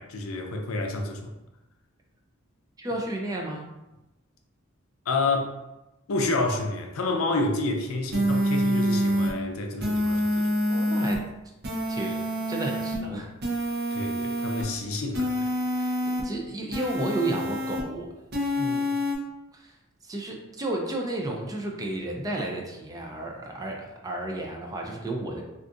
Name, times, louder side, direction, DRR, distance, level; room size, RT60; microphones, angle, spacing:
voice 1, 0.0-1.3 5.1-5.6 6.1-10.5 13.9-15.5, left 2 dB, 75° left, 3 dB, 0.5 m, -29 dB
voice 2, 2.8-3.7 10.7-11.2 11.9-13.3 15.8-18.1 18.6-18.9 19.5-19.8 20.0-25.4, right 2 dB, 15° right, 0 dB, 0.4 m, -32 dB
sound 1, 8.1-9.3 9.8-11.2 11.6-13.0 13.4-14.6 15.1-16.2 16.7-17.8 18.3-19.1, equal, 50° right, 0.7 m, -26 dB
2.5 x 2.4 x 3.7 m, 0.98 s
head